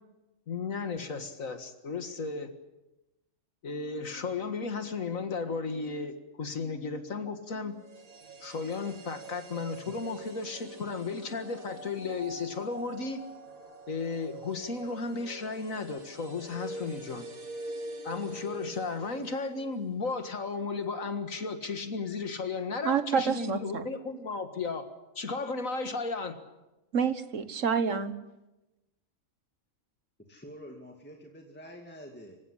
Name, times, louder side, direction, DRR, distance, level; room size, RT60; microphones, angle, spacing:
voice 1, 0.5-2.5 3.6-7.8 8.4-13.2 13.9-17.2 18.0-24.9 25.2-26.4, left 4 dB, 70° left, 8 dB, 2.1 m, -34 dB
sound 1, 7.7-19.9 20.1-20.2, right 2 dB, 90° right, 2.9 m, -44 dB
voice 2, 22.8-23.9 26.9-28.2, right 6 dB, 65° right, 11 dB, 1.7 m, -28 dB
voice 3, 30.3-32.4, equal, 5° left, 2 dB, 2.2 m, -47 dB
25.5 x 16.0 x 10.0 m, 1.0 s
omnidirectional pair, 1.4 m